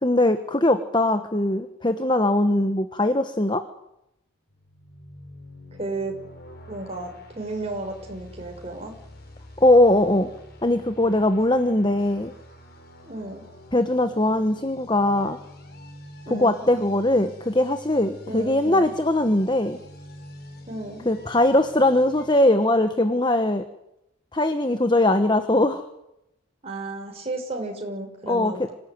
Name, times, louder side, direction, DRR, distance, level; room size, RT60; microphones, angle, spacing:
voice 1, 0.0-3.6 9.6-10.3 10.6-12.3 13.7-15.4 16.3-19.8 21.0-23.6 24.3-25.8 28.3-28.5, left 1 dB, 20° left, 9 dB, 1.2 m, -20 dB
sound 1, 4.5-22.3, left 1 dB, 45° left, 4.5 m, -46 dB
voice 2, 5.7-6.1 6.7-9.0 13.0-13.4 16.3-16.7 18.3-19.0 20.7-21.1 26.6-28.7, right 2 dB, 30° right, 1 dB, 6.0 m, -33 dB
26.5 x 17.0 x 9.4 m, 0.83 s
head